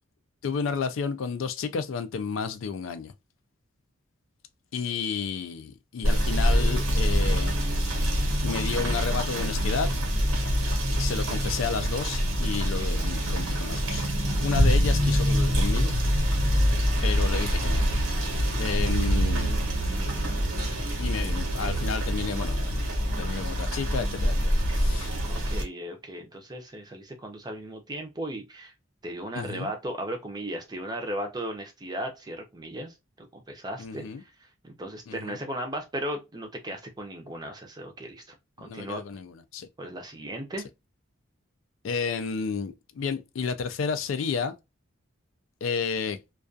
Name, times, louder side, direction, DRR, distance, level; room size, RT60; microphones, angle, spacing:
voice 1, 0.4-3.1 4.7-7.6 8.4-10.0 11.0-14.0 14.4-15.9 17.0-17.8 18.6-19.6 21.0-25.1 29.3-29.7 33.8-34.2 35.1-35.4 38.6-39.7 41.8-44.5 45.6-46.2, left 5 dB, 75° left, 0.4 m, -31 dB
Rain / Motor vehicle (road), 6.0-25.6, equal, 85° right, 1.0 m, -25 dB
voice 2, 25.2-28.7 29.0-34.3 34.6-39.0 39.8-40.7, right 1 dB, 20° right, 0.5 m, -36 dB
2.3 x 2.3 x 2.5 m
head